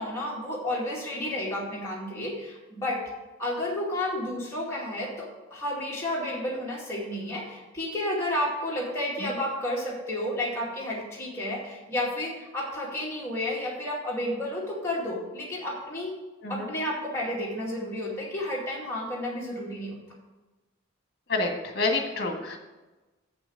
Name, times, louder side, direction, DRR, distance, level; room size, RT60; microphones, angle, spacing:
voice 1, 0.0-3.0 3.4-16.1 16.5-20.0, left 1 dB, 10° left, -5 dB, 2.3 m, -31 dB
voice 2, 21.3-22.6, left 3 dB, 50° left, 3 dB, 1.6 m, -28 dB
7.5 x 6.0 x 7.7 m, 1.1 s
head